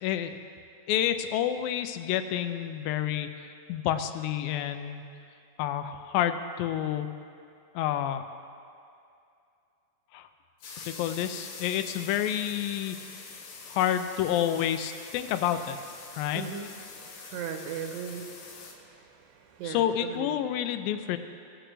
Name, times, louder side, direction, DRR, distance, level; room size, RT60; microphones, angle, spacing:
voice 1, 0.0-0.4 0.9-5.0 5.6-7.1 7.8-8.2 10.1-10.3 10.9-13.0 13.7-15.8 16.2-16.4 19.6-21.2, left 10 dB, 85° left, 9 dB, 2.4 m, -29 dB
sound 1, 10.6-18.7, left 4 dB, 65° left, 1.6 m, -45 dB
voice 2, 16.4-16.7 17.2-18.3 18.9-19.1 19.6-20.3, right 7 dB, 80° right, 4 dB, 2.5 m, -37 dB
19.5 x 7.9 x 3.2 m, 2.5 s
omnidirectional pair, 4.0 m